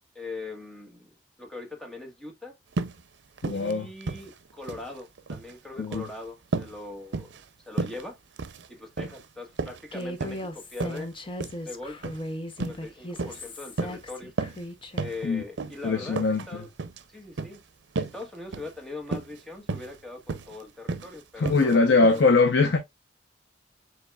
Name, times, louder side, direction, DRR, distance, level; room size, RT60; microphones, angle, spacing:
voice 1, 0.1-2.6 3.5-8.2 8.7-11.1 11.6-12.1 12.6-14.3 15.0-16.7 17.1-17.6 18.0-22.2, left 2 dB, 5° left, 1.2 m, -41 dB
sound 1, 2.7-3.0 3.4-3.7 4.0-4.9 5.2-5.5 5.8-6.1 6.5-6.8 7.1-7.4 7.8-8.0 8.4-8.7 9.0-9.2 9.6-10.4 10.8-11.0 11.4-11.6 12.0-12.2 12.6-12.8 13.2-13.5 13.8-14.0 14.4-14.6 15.0-15.2 15.6-15.8 16.1-16.5 16.8-17.0 17.4-17.6 18.0-18.2 18.5-18.7 19.1-19.4 19.7-20.0 20.3-20.6 20.9-21.1 21.5-21.8 22.0-22.2, right 3 dB, 85° right, 0.6 m, -32 dB
voice 2, 3.4-3.9 5.8-6.1 15.2-15.4 15.8-16.6 21.4-22.8, left 3 dB, 90° left, 0.7 m, -22 dB
Human voice, 9.9-15.1, left 1 dB, 30° left, 0.8 m, -37 dB
7.9 x 2.9 x 2.3 m
head